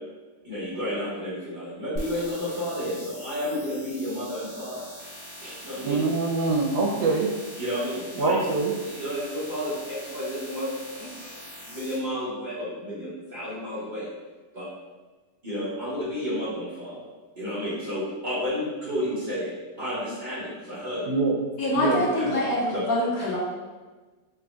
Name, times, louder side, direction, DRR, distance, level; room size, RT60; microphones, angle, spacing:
voice 1, 0.4-4.8 5.4-6.0 7.6-8.4 8.9-11.3 11.6-14.1 14.5-14.7 15.4-17.1 17.4-19.5 19.8-21.1 21.8-22.3 22.7-22.8, equal, 25° right, -10 dB, 1.6 m, -31 dB
sound 1, 2.0-11.9, equal, 25° left, 1.6 m, -42 dB
voice 2, 5.8-7.3 8.2-8.7 21.1-21.3 21.8-22.0 22.2-22.4, right 3 dB, 70° right, 0 dB, 1.1 m, -24 dB
voice 3, 21.6-23.4, left 1 dB, 60° left, -4 dB, 1.1 m, -25 dB
4.5 x 3.9 x 2.4 m, 1.3 s
omnidirectional pair, 2.0 m